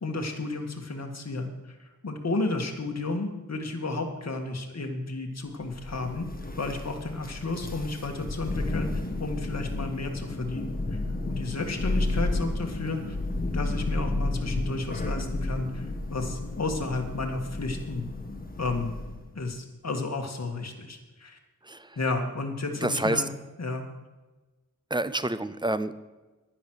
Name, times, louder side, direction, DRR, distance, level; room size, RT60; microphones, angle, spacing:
voice 1, 0.0-1.5 2.0-6.3 6.6-8.9 9.2-11.0 11.3-13.2 13.5-15.8 16.1-18.1 18.6-19.0 19.4-21.4 22.0-23.3 23.6-23.9, left 3 dB, 50° left, 3 dB, 1.9 m, -32 dB
Thunder, 5.7-19.3, left 2 dB, 25° left, 1.5 m, -32 dB
voice 2, 22.8-23.2 24.9-25.9, right 1 dB, 15° right, 14 dB, 0.5 m, -27 dB
10.5 x 10.5 x 6.3 m, 1.2 s
wide cardioid pair, 105°, 33 cm